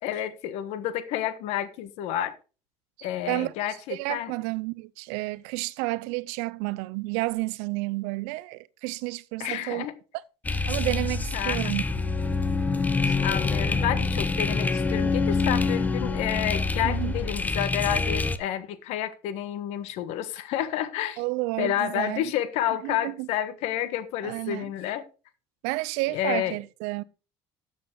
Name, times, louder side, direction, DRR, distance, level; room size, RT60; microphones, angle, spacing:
voice 1, 0.0-2.4 3.0-4.3 9.4-9.9 11.3-11.7 13.2-21.2 21.6-25.0 26.1-26.6, left 11 dB, 75° left, 1.4 m, -30 dB
voice 2, 3.0-3.5 3.9-9.9 10.5-11.8 13.0-13.2 16.8-17.1 21.2-22.2 22.8-23.3 24.2-24.7 25.6-27.0, right 23 dB, 85° right, 0.6 m, -31 dB
sound 1, 10.4-18.4, left 3 dB, 15° left, 0.9 m, -26 dB
13.0 x 7.3 x 3.8 m
cardioid pair, 110°, 11 cm